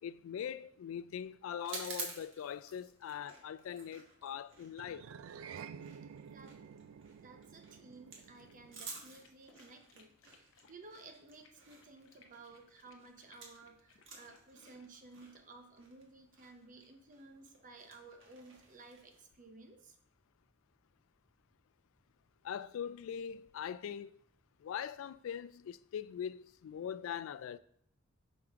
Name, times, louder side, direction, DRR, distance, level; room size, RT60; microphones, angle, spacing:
voice 1, 0.0-5.1 22.4-24.2 24.6-27.6, left 8 dB, 90° left, 0.3 m, -42 dB
sound 1, 1.6-13.7 13.9-19.2, right 4 dB, 65° right, 1.4 m, -51 dB
sound 2, 4.7-9.3, right 7 dB, 90° right, 0.3 m, -51 dB
voice 2, 7.2-20.0, right 3 dB, 40° right, 0.8 m, -56 dB
sound 3, 8.3-15.6, left 4 dB, 70° left, 0.7 m, -67 dB
6.0 x 5.0 x 3.6 m
head